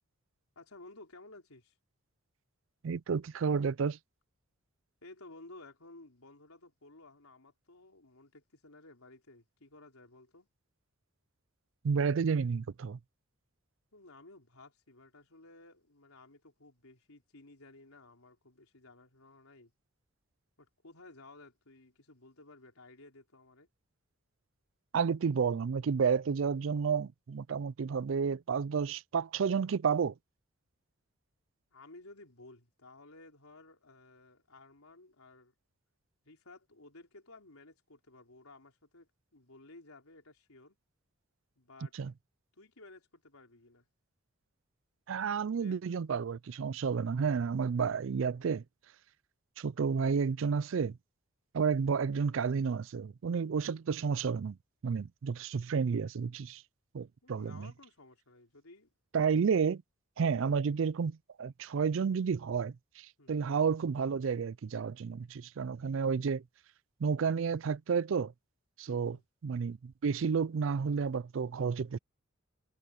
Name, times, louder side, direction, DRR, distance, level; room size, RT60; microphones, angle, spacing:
voice 1, 0.6-1.7 5.0-10.5 13.9-19.7 20.6-23.7 31.7-35.5 36.3-40.8 41.6-41.9 42.6-43.8 45.6-46.0 57.2-58.9 63.2-63.3 68.9-69.2, left 2 dB, 90° left, 4.2 m, -55 dB
voice 2, 2.8-4.0 11.8-13.0 24.9-30.1 41.9-42.1 45.1-48.6 49.6-51.0 51.5-54.6 54.8-56.6 56.9-57.7 59.1-59.8 60.2-66.4 67.0-68.3 68.8-69.2 69.4-72.0, right 6 dB, 60° right, 0.4 m, -31 dB
head